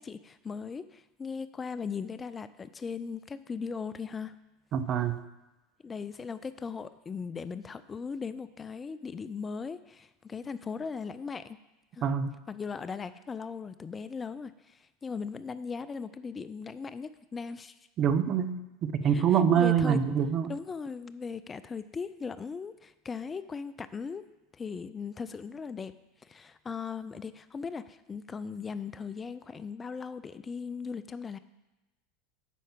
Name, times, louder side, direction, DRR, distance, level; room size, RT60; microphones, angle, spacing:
voice 1, 0.0-4.4 5.8-11.6 11.9-12.1 12.5-17.8 19.1-19.2 19.5-20.0 20.5-24.2 24.5-25.9 26.2-31.4, left 5 dB, 25° left, 14 dB, 0.4 m, -38 dB
voice 2, 4.7-5.2 12.0-12.4 18.0-20.5, right 8 dB, 40° right, 11 dB, 0.7 m, -25 dB
8.3 x 5.5 x 7.4 m, 1.0 s
hypercardioid pair, 85°, 0 cm